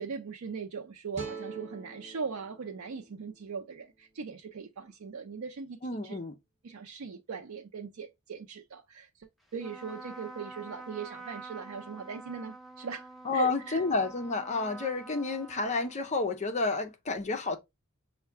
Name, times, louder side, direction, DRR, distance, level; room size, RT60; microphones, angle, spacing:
voice 1, 0.0-6.2 6.6-13.8, right 5 dB, 85° right, 0.5 m, -40 dB
sound 1, 1.1-4.3, right 4 dB, 35° right, 1.2 m, -45 dB
voice 2, 5.8-6.3 13.3-17.6, left 3 dB, 35° left, 0.5 m, -30 dB
Trumpet, 9.5-16.4, right 3 dB, ahead, 0.7 m, -47 dB
5.5 x 2.2 x 3.4 m
head